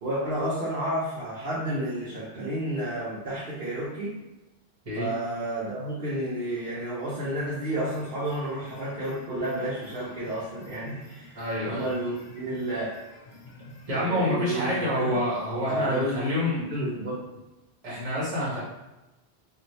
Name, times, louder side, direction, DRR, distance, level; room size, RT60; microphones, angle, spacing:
voice 1, 0.0-4.1 4.9-12.9 13.9-15.2 15.7-17.2, right 1 dB, 60° right, -9 dB, 0.9 m, -31 dB
sound 1, 7.8-14.1, left 2 dB, 70° left, 0.9 m, -48 dB
voice 2, 11.3-11.8 13.9-16.7 17.8-18.6, left 1 dB, 35° right, -7 dB, 1.1 m, -27 dB
3.1 x 2.6 x 2.6 m, 1.0 s
omnidirectional pair, 1.1 m